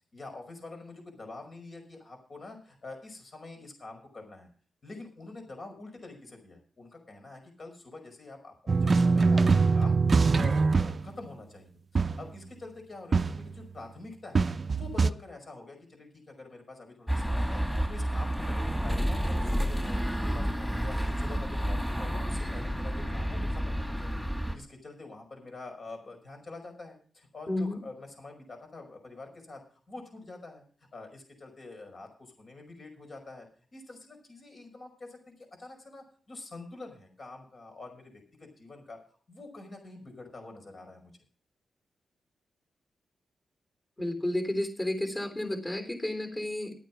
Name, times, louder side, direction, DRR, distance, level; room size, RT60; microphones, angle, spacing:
voice 1, 0.1-4.5 4.8-11.7 12.2-24.2 24.5-29.6 29.9-30.6 30.9-41.1, left 3 dB, 50° left, 4 dB, 5.3 m, -46 dB
sound 1, 8.7-11.1 12.0-12.3 13.1-13.7 14.4-15.1, right 4 dB, 45° right, 0.6 m, -24 dB
sound 2, 17.1-24.6, equal, 5° left, 2.7 m, -30 dB
voice 2, 27.5-27.8 44.0-46.7, left 1 dB, 20° left, 7 dB, 3.6 m, -31 dB
12.5 x 9.2 x 6.0 m, 0.43 s
cardioid pair, 65°, 0 cm